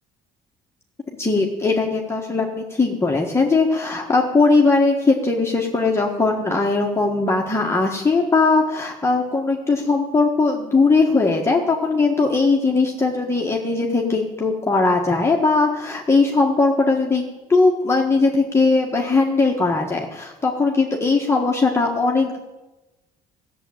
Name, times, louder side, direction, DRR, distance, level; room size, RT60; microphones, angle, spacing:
voice 1, 1.2-17.2 17.5-22.4, left 3 dB, 15° left, -1 dB, 1.6 m, -19 dB
14.5 x 7.5 x 8.9 m, 1.1 s
cardioid pair, 110°, 17 cm